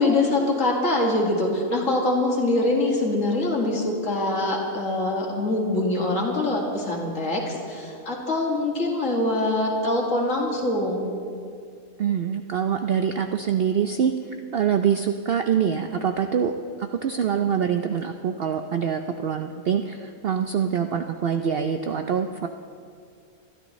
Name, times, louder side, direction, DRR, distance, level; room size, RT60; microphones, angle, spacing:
voice 1, 0.0-11.1, left 2 dB, 60° left, -1 dB, 2.4 m, -24 dB
voice 2, 12.0-14.1 14.5-22.5, right 8 dB, 65° right, 6 dB, 0.6 m, -25 dB
23.5 x 12.5 x 3.1 m, 2.3 s
omnidirectional pair, 1.5 m